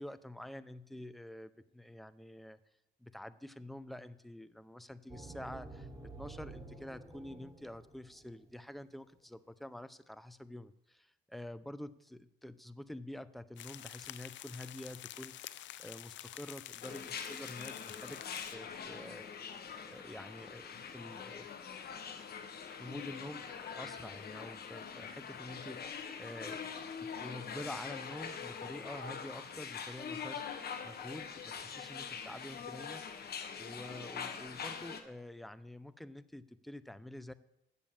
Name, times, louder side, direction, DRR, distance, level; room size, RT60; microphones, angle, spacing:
voice 1, 0.0-2.6 3.0-19.4 19.8-21.9 22.5-26.7 27.2-37.3, left 1 dB, ahead, 14 dB, 0.5 m, -48 dB
sound 1, 5.1-8.5, right 2 dB, 15° right, 1.7 m, -50 dB
sound 2, 13.6-18.5, left 13 dB, 70° left, 0.5 m, -48 dB
sound 3, 16.8-35.0, left 6 dB, 55° left, 1.2 m, -44 dB
8.3 x 7.0 x 7.5 m, 0.84 s
cardioid pair, 90°, 20 cm